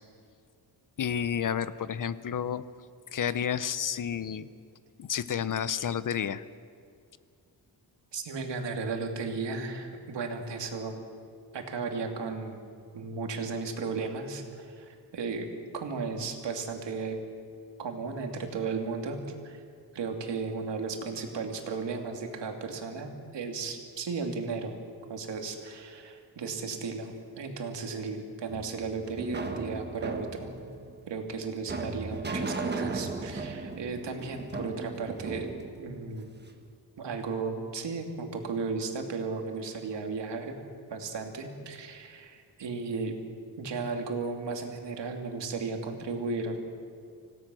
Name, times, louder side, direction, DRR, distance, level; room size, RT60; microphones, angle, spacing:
voice 1, 1.0-2.6 3.1-4.5 5.0-6.4, left 8 dB, 50° left, 15 dB, 0.7 m, -30 dB
voice 2, 8.1-11.0 11.5-12.6 12.9-15.5 15.7-17.3 17.8-19.2 19.4-19.6 19.9-24.8 25.1-30.5 31.1-35.5 35.8-36.3 37.0-40.5 40.9-43.1 43.6-46.6, right 4 dB, 90° right, 3 dB, 2.7 m, -35 dB
sound 1, 28.5-36.6, right 3 dB, 25° right, 1.4 m, -37 dB
26.0 x 17.0 x 6.3 m, 2.3 s
wide cardioid pair, 145°, 41 cm